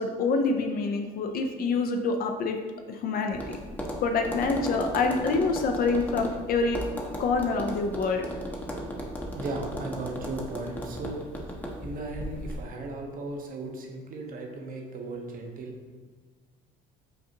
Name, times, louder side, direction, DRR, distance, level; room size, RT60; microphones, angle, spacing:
voice 1, 0.0-2.6 2.9-3.6 4.0-6.8 7.2-8.3, left 4 dB, 50° left, 4 dB, 0.4 m, -26 dB
Tap, 3.3-12.6, equal, 10° left, 0.7 m, -36 dB
voice 2, 9.4-11.2 11.8-16.0, right 2 dB, 45° right, 2 dB, 0.8 m, -36 dB
5.3 x 2.4 x 2.8 m, 1.4 s
supercardioid pair, 85°, 19 cm